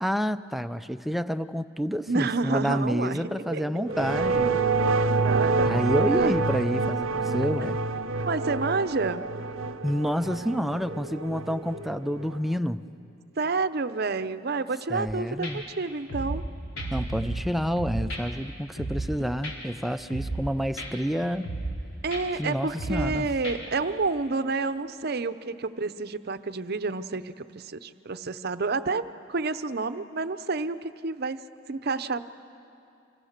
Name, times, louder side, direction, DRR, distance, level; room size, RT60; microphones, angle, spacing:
voice 1, 0.0-4.6 5.6-7.8 9.8-12.8 14.9-15.6 16.9-21.5 22.4-23.3, equal, ahead, 10 dB, 0.5 m, -29 dB
voice 2, 2.1-3.6 5.1-6.4 8.3-9.2 13.4-16.4 22.0-31.4 31.7-32.3, right 3 dB, 50° right, 12 dB, 0.7 m, -29 dB
sound 1, 3.1-12.4, equal, 30° right, 1.0 m, -43 dB
sound 2, 3.9-12.6, right 3 dB, 85° right, 0.7 m, -27 dB
sound 3, 15.1-15.2 15.4-15.5 16.1-16.5 16.8-17.5 17.8-18.2 18.8-19.1 19.4-19.5 20.1-20.5 20.8-20.9 21.4-21.8 22.1-22.2 22.8-23.1 23.4-23.6, right 2 dB, 90° left, 4.6 m, -32 dB
30.0 x 26.0 x 6.6 m, 2.7 s
head